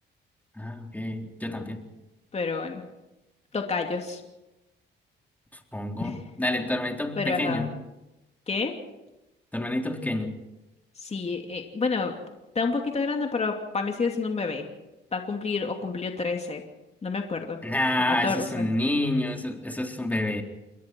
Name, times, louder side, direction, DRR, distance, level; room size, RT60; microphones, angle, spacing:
voice 1, 0.6-1.8 5.7-7.7 9.5-10.4 17.6-20.4, left 1 dB, 10° left, 2 dB, 3.8 m, -28 dB
voice 2, 2.3-2.8 3.5-4.2 6.0-6.2 7.2-7.6 8.5-8.7 11.0-12.1 12.5-14.7 15.1-16.6 17.0-17.6 18.1-18.7, left 4 dB, 30° left, 3 dB, 2.7 m, -29 dB
28.0 x 21.5 x 4.6 m, 0.99 s
cardioid pair, 90°, 20 cm